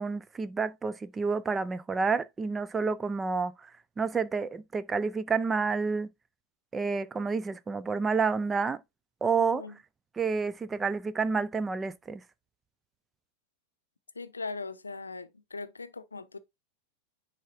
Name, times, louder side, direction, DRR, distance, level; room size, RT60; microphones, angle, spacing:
voice 1, 0.0-3.7 4.0-6.1 6.7-8.8 9.2-9.6 10.2-12.2, right 5 dB, 15° right, 0.4 m, -29 dB
voice 2, 9.4-9.8 14.1-16.4, left 3 dB, 75° left, 0.6 m, -40 dB
10.0 x 3.5 x 2.6 m
figure-of-eight pair, 90°, 0 cm